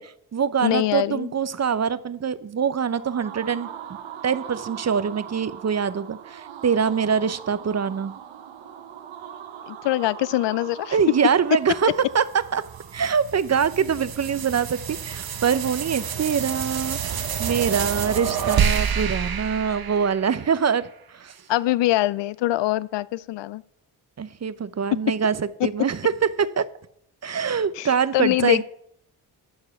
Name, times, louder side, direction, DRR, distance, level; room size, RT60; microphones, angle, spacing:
voice 1, 0.0-3.7 4.2-8.1 10.9-12.2 12.5-12.6 12.9-20.9 21.1-21.4 24.2-26.7 27.2-28.6, right 7 dB, 35° right, 16 dB, 0.7 m, -24 dB
voice 2, 0.6-1.3 9.7-11.0 21.5-23.6 27.8-28.6, left 16 dB, 70° left, 19 dB, 0.5 m, -23 dB
sound 1, 2.7-13.6, right 9 dB, 85° right, 1.0 m, -41 dB
sound 2, 12.1-20.7, right 7 dB, 50° right, 1.0 m, -28 dB
11.5 x 4.8 x 7.1 m, 0.71 s
supercardioid pair, 45°, 45 cm